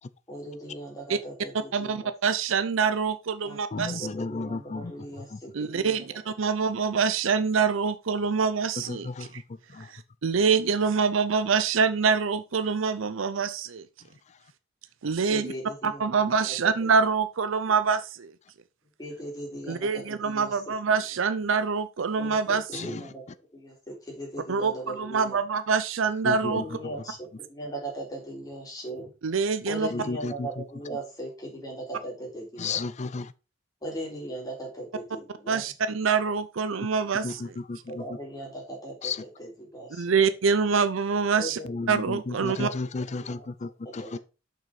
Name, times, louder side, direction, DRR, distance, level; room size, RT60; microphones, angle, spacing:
voice 1, 0.3-2.1 3.4-3.6 4.0-6.2 15.3-16.1 16.5-16.6 16.8-16.9 19.0-20.7 22.2-23.2 23.5-25.4 26.5-27.2 27.5-29.1 29.7-32.8 33.8-35.6 37.9-40.0 41.4-41.9 42.5-42.7 43.1-43.5 43.9-44.2, right 1 dB, 20° left, 3.6 m, -38 dB
voice 2, 1.5-4.1 5.5-9.4 9.8-13.8 15.0-15.5 15.8-18.3 19.7-22.9 24.5-26.6 29.2-29.9 35.5-37.6 39.9-41.6 41.9-42.7, right 5 dB, 75° right, 0.6 m, -25 dB
voice 3, 3.7-4.9 5.3-5.4 8.9-9.3 9.8-9.9 22.7-23.0 26.2-26.6 29.9-30.5 32.6-33.3 37.2-37.3 37.7-38.0 39.0-39.2 41.7-44.2, left 3 dB, 35° left, 0.4 m, -33 dB
6.7 x 6.2 x 4.8 m
head